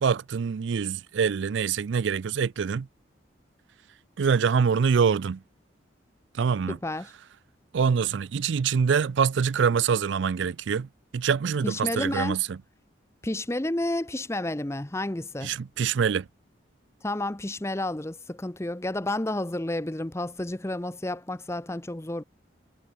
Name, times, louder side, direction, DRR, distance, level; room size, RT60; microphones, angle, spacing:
voice 1, 0.0-2.9 4.2-5.4 6.4-6.8 7.7-10.9 11.1-12.6 15.4-16.2, right 6 dB, 70° right, 0.4 m, -25 dB
voice 2, 6.7-7.1 11.6-12.4 13.2-15.6 17.0-22.2, left 1 dB, 15° left, 0.7 m, -31 dB
head